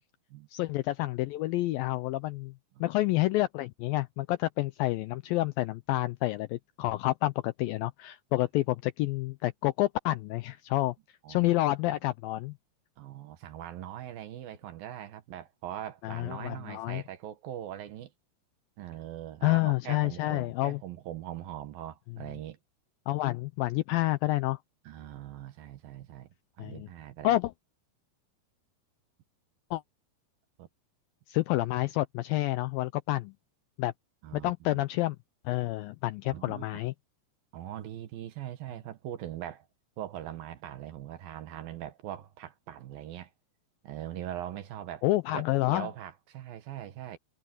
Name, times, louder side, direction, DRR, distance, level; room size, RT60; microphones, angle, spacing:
voice 1, 0.5-2.5 2.8-10.9 11.3-12.5 16.0-17.0 19.4-20.8 23.1-24.6 26.6-26.9 27.2-27.5 29.7-29.8 31.3-33.3 33.8-33.9 34.3-35.2 35.5-36.9 45.0-45.9, left 17 dB, 90° left, 2.0 m, -29 dB
voice 2, 13.0-18.1 18.8-22.6 24.9-26.3 26.6-27.3 30.6-30.7 34.2-34.8 36.3-36.7 37.5-39.7 40.0-43.3 43.8-45.0 45.3-47.2, right 11 dB, 70° right, 3.0 m, -41 dB
omnidirectional pair, 4.7 m